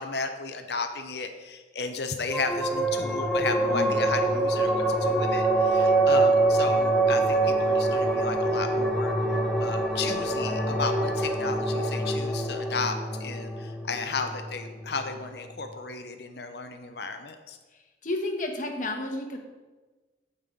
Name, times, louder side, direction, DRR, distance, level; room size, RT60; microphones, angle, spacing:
voice 1, 0.0-17.6, left 4 dB, 60° left, 6 dB, 0.8 m, -34 dB
sound 1, 2.3-15.1, right 2 dB, ahead, 0.9 m, -25 dB
voice 2, 17.7-19.4, left 2 dB, 45° left, 3 dB, 1.3 m, -32 dB
15.0 x 5.5 x 3.9 m, 1.3 s
head